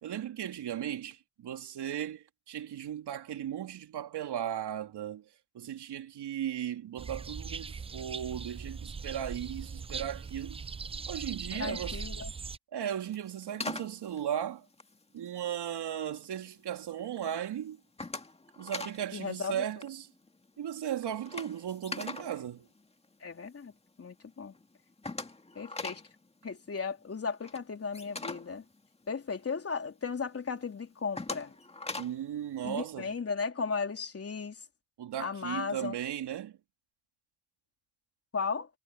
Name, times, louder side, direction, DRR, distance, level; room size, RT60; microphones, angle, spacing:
voice 1, 0.0-5.2 5.5-10.6 11.1-12.0 12.7-14.7 15.1-17.8 18.6-20.1 20.6-22.7 32.0-33.1 35.0-36.6, right 10 dB, 55° right, 3.5 m, -36 dB
sound 1, 7.0-12.6, right 5 dB, 15° right, 0.4 m, -40 dB
voice 2, 11.5-12.3 19.1-19.6 23.2-23.7 24.0-24.5 25.6-26.0 26.4-28.6 29.1-31.5 32.6-34.6 35.2-35.9 38.3-38.7, left 5 dB, 30° left, 3.7 m, -35 dB
sound 2, 13.0-15.6 16.0-16.5 16.9-17.3 17.6-19.0 19.3-19.5 19.7-23.5 23.9-24.0 24.3-24.4 24.5-29.6 30.0-30.1 30.6-32.3, left 2 dB, 10° left, 2.2 m, -42 dB
supercardioid pair, 85°, 49 cm